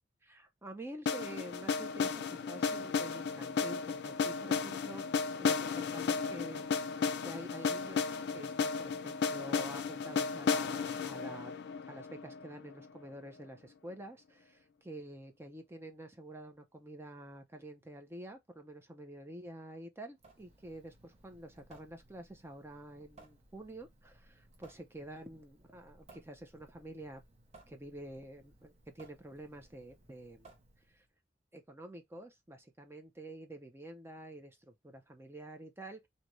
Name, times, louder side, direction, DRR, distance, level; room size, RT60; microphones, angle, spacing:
voice 1, 0.2-5.0 5.4-27.2 27.7-30.5 30.9-31.1 31.5-36.0, right 1 dB, 15° right, 0.4 m, -48 dB
sound 1, 1.1-13.0, left 5 dB, 65° left, 0.4 m, -34 dB
Water tap faucet / Sink (filling or washing) / Drip, 20.2-31.1, right 2 dB, 40° right, 0.9 m, -61 dB
2.6 x 2.6 x 3.0 m
head